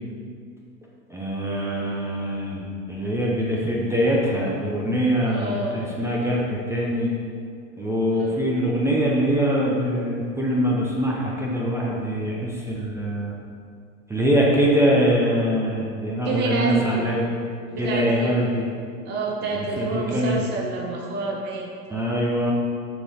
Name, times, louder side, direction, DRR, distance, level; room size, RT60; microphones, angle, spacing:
voice 1, 1.1-7.1 7.8-13.3 14.1-17.2 17.8-18.7 19.5-20.4 21.9-22.5, equal, 5° right, -4 dB, 0.5 m, -23 dB
voice 2, 5.3-5.9 8.1-8.3 16.2-17.1 17.7-18.4 19.0-21.7, right 3 dB, 20° right, -2 dB, 1.0 m, -28 dB
7.0 x 3.8 x 6.3 m, 2.3 s
hypercardioid pair, 120°, 48 cm